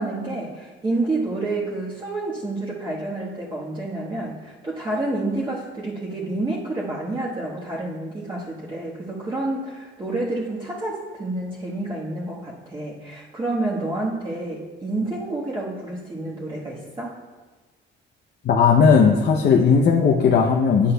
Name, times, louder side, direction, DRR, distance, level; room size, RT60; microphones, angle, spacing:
voice 1, 0.0-17.2, right 2 dB, 25° right, -6 dB, 1.3 m, -29 dB
voice 2, 18.4-20.9, left 6 dB, 55° left, 1 dB, 0.7 m, -16 dB
9.4 x 8.3 x 2.2 m, 1.3 s
cardioid pair, 90°, 20 cm